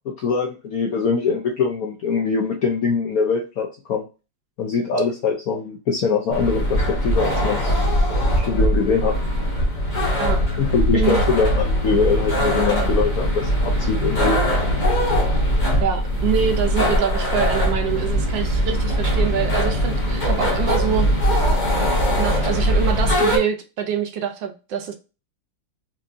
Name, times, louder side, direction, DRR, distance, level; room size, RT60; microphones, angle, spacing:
voice 1, 0.1-4.0 4.6-7.7 8.1-9.2 10.6-14.4, left 5 dB, 75° left, 0 dB, 0.8 m, -23 dB
sound 1, 6.3-23.4, equal, 40° left, 0.6 m, -21 dB
voice 2, 15.8-21.1 22.2-24.9, right 8 dB, 70° right, 5 dB, 1.2 m, -25 dB
4.4 x 2.6 x 2.4 m, 0.31 s
omnidirectional pair, 2.2 m